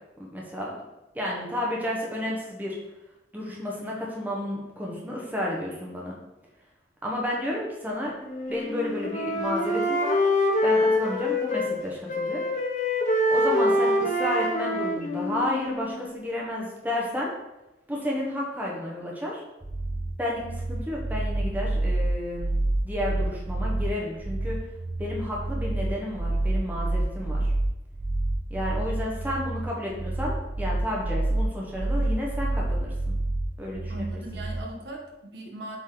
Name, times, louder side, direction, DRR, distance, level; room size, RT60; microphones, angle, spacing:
voice 1, 0.2-0.7 1.1-2.7 3.3-6.1 7.0-8.1 8.5-10.3 10.6-12.4 13.3-17.3 17.9-19.4 20.2-20.4 20.7-22.5 22.8-24.6 25.0-27.5 28.5-33.2 33.6-34.2, left 1 dB, 10° right, -3 dB, 1.2 m, -31 dB
Wind instrument woodwind instrument, 8.2-11.8 12.1-16.1, left 1 dB, 40° left, 1.0 m, -25 dB
sound 1, 19.6-34.6, right 2 dB, 40° right, 1.1 m, -28 dB
voice 2, 33.9-35.8, right 1 dB, 65° right, 1 dB, 1.1 m, -38 dB
7.6 x 4.2 x 3.9 m, 0.96 s
head